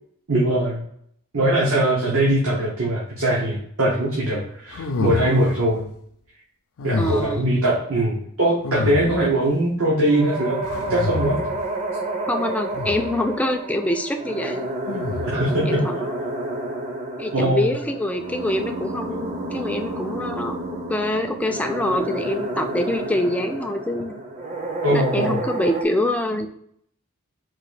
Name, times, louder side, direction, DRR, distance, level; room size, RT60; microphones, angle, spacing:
voice 1, 0.3-0.8 1.3-5.9 6.8-10.6 10.9-11.4 15.2-15.8 17.3-17.7 24.8-25.4, right 1 dB, 70° right, -5 dB, 1.0 m, -21 dB
sound 1, 4.7-5.7 6.8-7.5 8.6-9.5 10.6-11.7 12.7-13.3 14.9-15.6, left 3 dB, 70° left, 0.4 m, -29 dB
voice 2, 7.0-7.4 12.3-14.7 15.7-16.2 17.2-20.6 20.9-24.1 24.9-26.5, left 1 dB, 5° left, 4 dB, 0.3 m, -25 dB
sound 2, 10.0-25.8, right 2 dB, 30° right, 0.6 m, -30 dB
3.9 x 2.5 x 4.7 m, 0.68 s
head